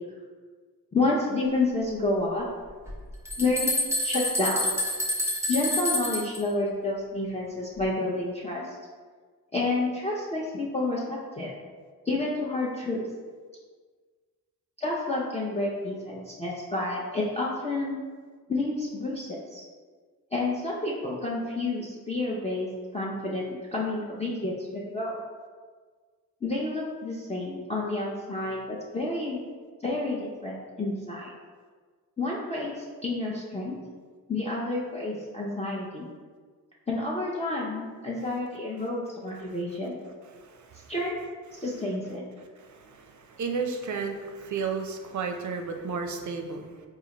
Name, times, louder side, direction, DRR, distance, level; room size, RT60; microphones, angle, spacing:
voice 1, 0.9-2.5 3.4-4.7 5.5-8.7 9.5-11.5 12.1-13.0 14.8-18.0 18.5-19.6 20.3-25.1 26.4-29.4 29.8-31.3 32.2-33.8 34.3-36.1 36.9-40.0 40.9-41.2 41.5-42.2, left 2 dB, 15° left, -5 dB, 0.5 m, -29 dB
sound 1, 2.9-3.0 3.3-6.4, left 1 dB, 5° right, 0.9 m, -28 dB
voice 2, 40.4-40.9 42.6-46.7, right 5 dB, 50° right, 4 dB, 0.5 m, -33 dB
4.0 x 2.4 x 2.9 m, 1.5 s
cardioid pair, 65°, 37 cm